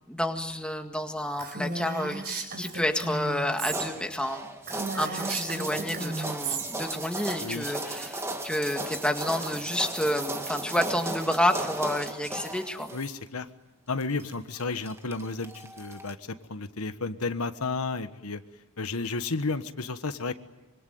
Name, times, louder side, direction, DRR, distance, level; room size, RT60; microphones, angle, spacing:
voice 1, 0.1-12.9, left 1 dB, 5° left, 4 dB, 1.9 m, -30 dB
Female speech woman speaking, 1.4-3.9 4.2-4.3 4.6-6.7, right 3 dB, 45° right, 4.4 m, -34 dB
sound 1, 3.6-13.1 14.0-16.1, right 2 dB, 10° right, 1.8 m, -36 dB
voice 2, 7.4-7.7 12.9-13.5 13.9-18.4 18.8-20.3, left 3 dB, 85° left, 10 dB, 1.3 m, -32 dB
25.5 x 25.0 x 9.3 m, 1.0 s
head